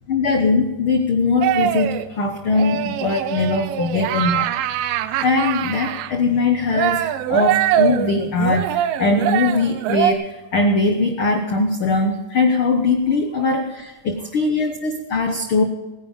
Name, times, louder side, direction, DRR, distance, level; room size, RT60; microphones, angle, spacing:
voice 1, 0.1-15.6, left 3 dB, 70° left, 5 dB, 1.2 m, -21 dB
sound 1, 1.4-2.1 2.5-6.1 6.7-10.1, right 12 dB, 90° right, 2.4 m, -22 dB
19.5 x 10.5 x 5.1 m, 1.2 s
omnidirectional pair, 3.9 m